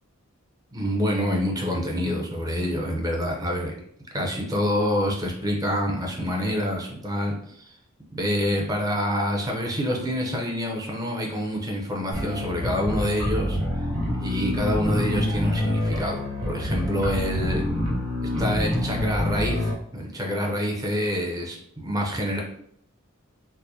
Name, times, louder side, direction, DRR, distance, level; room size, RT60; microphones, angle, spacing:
voice 1, 0.7-3.8 4.1-7.8 8.1-13.6 14.2-17.6 18.4-22.4, equal, 15° right, 0 dB, 0.7 m, -27 dB
sound 1, 12.1-19.7, left 1 dB, 85° right, 1.2 m, -26 dB
4.7 x 2.1 x 2.7 m, 0.68 s
head